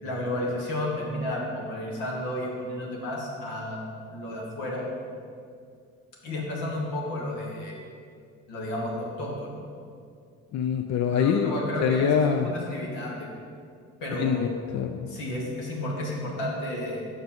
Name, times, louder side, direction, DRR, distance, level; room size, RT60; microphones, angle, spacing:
voice 1, 0.0-3.8 4.1-4.9 6.2-7.8 8.5-9.5 11.1-12.1 12.4-13.3 14.0-14.5 15.1-17.0, left 1 dB, 85° left, -3 dB, 1.6 m, -32 dB
voice 2, 10.5-11.5 11.8-12.5 14.1-14.5 14.7-15.1, left 7 dB, 55° left, 5 dB, 0.5 m, -24 dB
5.4 x 5.3 x 5.8 m, 2.3 s
supercardioid pair, 65°, 34 cm